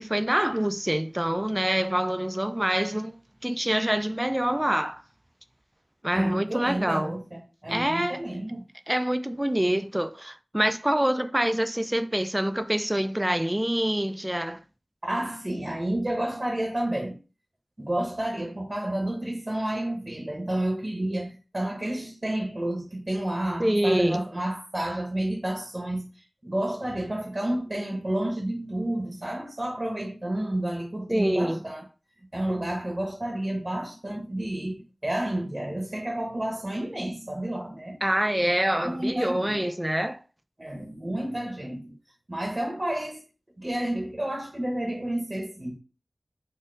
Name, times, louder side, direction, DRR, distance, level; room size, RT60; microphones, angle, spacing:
voice 1, 0.0-3.2 3.4-5.0 6.0-7.1 7.7-8.2 8.9-14.6 23.6-24.3 31.1-31.6 38.0-40.2, right 1 dB, 15° right, 0.3 m, -26 dB
voice 2, 6.1-8.7 15.0-17.2 17.8-26.1 26.4-31.8 32.3-38.0 38.5-38.6 38.8-39.7 40.6-41.9 42.3-43.2 43.6-45.8, right 1 dB, 35° right, 0.8 m, -30 dB
3.8 x 2.1 x 3.8 m
wide cardioid pair, 55°, 0 cm